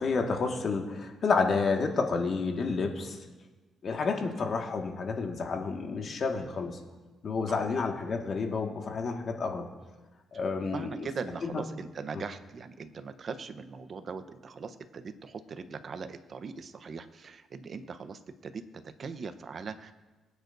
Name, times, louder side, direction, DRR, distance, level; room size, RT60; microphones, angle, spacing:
voice 1, 0.0-3.2 3.8-6.8 7.2-9.7 10.3-11.1 11.4-11.6 12.1-12.2, left 4 dB, 50° left, 2 dB, 1.8 m, -30 dB
voice 2, 10.7-19.9, right 5 dB, 50° right, 9 dB, 0.9 m, -40 dB
23.0 x 9.3 x 2.7 m, 1.3 s
cardioid pair, 90°, 0 cm